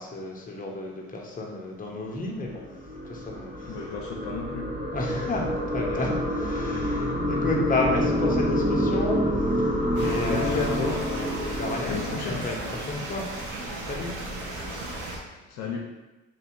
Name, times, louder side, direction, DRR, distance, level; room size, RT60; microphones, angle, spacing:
voice 1, 0.0-2.6 3.0-3.8 4.9-13.3 13.7-14.1, left 2 dB, 25° left, -1 dB, 1.0 m, -32 dB
sound 1, 2.2-12.8, equal, 30° right, 1.5 m, -28 dB
voice 2, 3.6-4.8 10.3-11.0 11.8-12.5 15.5-15.8, left 4 dB, 75° left, -1 dB, 0.7 m, -32 dB
sound 2, 9.9-15.2, right 1 dB, 75° right, 1.2 m, -35 dB
3.3 x 2.8 x 4.6 m, 1.1 s
supercardioid pair, 70°, 30 cm